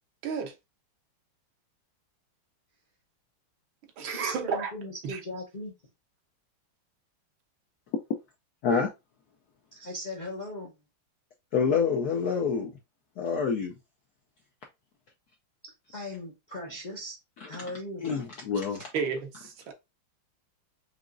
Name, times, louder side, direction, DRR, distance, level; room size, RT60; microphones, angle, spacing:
voice 1, 0.2-0.5 4.0-4.7 5.0-5.2 18.9-19.7, right 5 dB, 70° right, 1.5 m, -32 dB
voice 2, 4.1-5.7 9.7-10.7 15.6-17.2 17.5-18.1, left 1 dB, 50° left, 0.5 m, -39 dB
voice 3, 11.5-12.7 13.2-13.7 18.0-18.9, left 6 dB, 75° left, 0.9 m, -27 dB
5.0 x 2.9 x 2.5 m
omnidirectional pair, 2.3 m